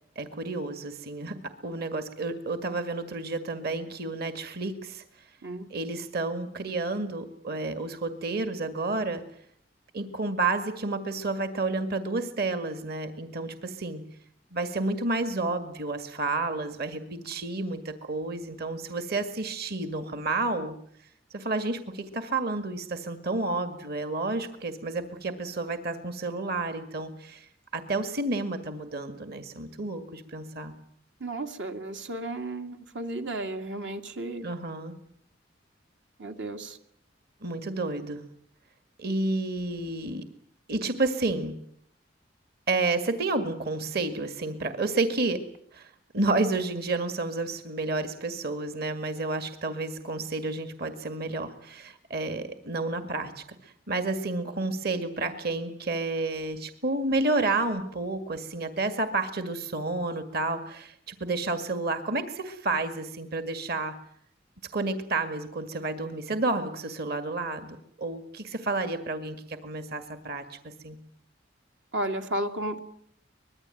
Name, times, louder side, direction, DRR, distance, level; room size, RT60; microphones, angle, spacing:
voice 1, 0.2-1.4 1.6-5.0 5.7-9.2 9.9-14.0 14.5-20.8 21.3-30.7 34.4-35.0 37.4-38.2 39.0-40.3 40.7-41.5 42.7-45.4 45.7-64.0 64.7-71.0, right 3 dB, 60° right, 8 dB, 2.0 m, -30 dB
voice 2, 31.2-34.5 36.2-36.8 71.9-72.8, right 1 dB, 80° right, 4 dB, 2.4 m, -33 dB
24.5 x 20.5 x 9.2 m, 0.70 s
head